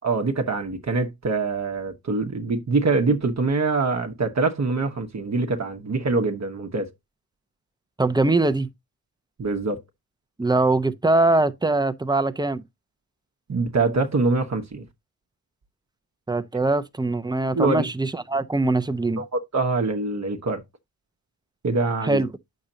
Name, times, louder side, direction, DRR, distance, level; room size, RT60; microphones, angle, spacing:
voice 1, 0.0-6.9 9.4-9.8 13.5-14.9 17.5-17.9 19.2-20.6 21.6-22.2, right 3 dB, 45° right, 1.1 m, -24 dB
voice 2, 8.0-8.7 10.4-12.6 16.3-19.2 22.0-22.3, right 2 dB, 10° right, 0.8 m, -22 dB
8.5 x 6.5 x 2.8 m
cardioid pair, 65°, 37 cm